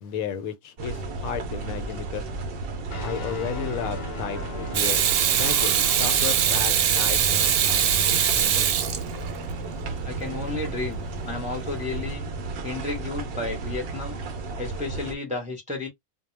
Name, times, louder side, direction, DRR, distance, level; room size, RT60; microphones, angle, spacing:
voice 1, 0.0-2.2 3.0-8.7, left 7 dB, 75° left, 1.0 m, -34 dB
sound 1, 0.8-15.2, right 3 dB, 60° right, 0.6 m, -33 dB
sound 2, 2.9-14.6, left 2 dB, 55° left, 0.8 m, -42 dB
Water tap faucet / Sink (filling or washing), 4.7-9.5 11.9-12.1, right 9 dB, 85° right, 1.1 m, -22 dB
voice 2, 10.0-12.2 12.6-14.2 14.6-15.9, left 3 dB, 10° right, 0.5 m, -32 dB
2.3 x 2.1 x 3.0 m
omnidirectional pair, 1.5 m